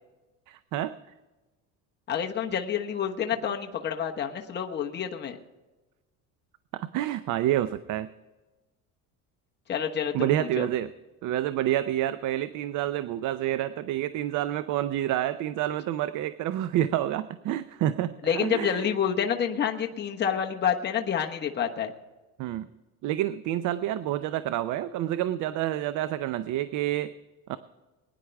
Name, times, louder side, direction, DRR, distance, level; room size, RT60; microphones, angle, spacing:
voice 1, 0.5-0.9 6.7-8.1 10.1-10.9 11.2-18.9 22.4-22.7 23.0-27.1 27.5-27.6, right 13 dB, 60° right, 13 dB, 0.7 m, -28 dB
voice 2, 2.1-5.4 9.7-10.7 18.2-21.9, left 8 dB, 30° left, 2 dB, 1.2 m, -28 dB
21.0 x 10.0 x 3.4 m, 1.1 s
cardioid pair, 125°, 34 cm